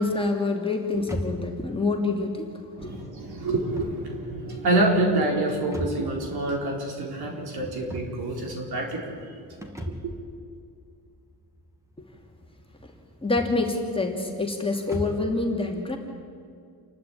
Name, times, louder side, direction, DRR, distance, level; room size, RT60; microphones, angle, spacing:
voice 1, 0.0-2.9 3.2-3.3 12.8-12.9 13.2-16.0, left 3 dB, 15° left, 1 dB, 2.7 m, -27 dB
sound 1, 1.0-15.4, equal, 5° right, 2.4 m, -40 dB
voice 2, 2.8-9.1, right 2 dB, 65° right, 1 dB, 4.5 m, -27 dB
28.5 x 12.0 x 8.9 m, 2.3 s
cardioid pair, 110°, 40 cm